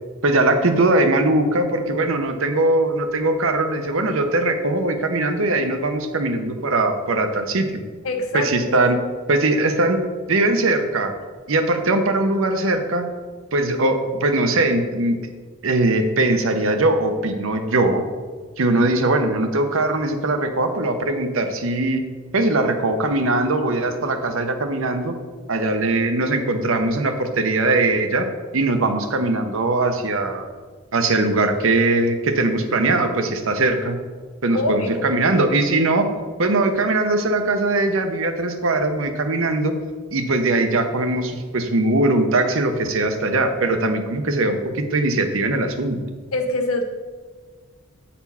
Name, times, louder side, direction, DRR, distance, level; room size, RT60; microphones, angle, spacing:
voice 1, 0.2-7.8 8.3-9.0 9.3-10.0 10.3-11.1 11.5-13.1 13.5-15.2 15.6-18.0 18.6-22.0 22.3-25.2 25.5-28.3 28.5-30.5 30.9-34.0 34.4-36.1 36.4-39.7 40.1-46.0, right 2 dB, 65° right, 7 dB, 0.8 m, -20 dB
voice 2, 8.0-8.5 34.5-35.1 46.3-46.8, left 2 dB, 85° left, 4 dB, 1.0 m, -24 dB
8.2 x 4.3 x 5.6 m, 1.5 s
head